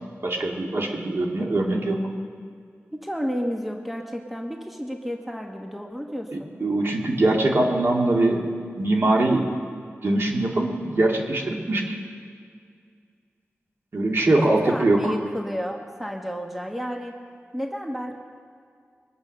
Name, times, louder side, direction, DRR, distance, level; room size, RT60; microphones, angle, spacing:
voice 1, 0.2-2.0 6.3-8.5 8.8-9.5 10.0-12.0 13.9-15.0, right 2 dB, 55° right, 0 dB, 2.0 m, -22 dB
voice 2, 2.9-6.5 14.3-17.1 17.5-18.1, equal, 5° right, 1 dB, 1.3 m, -31 dB
22.5 x 8.2 x 6.5 m, 2.2 s
wide cardioid pair, 95°, 5 cm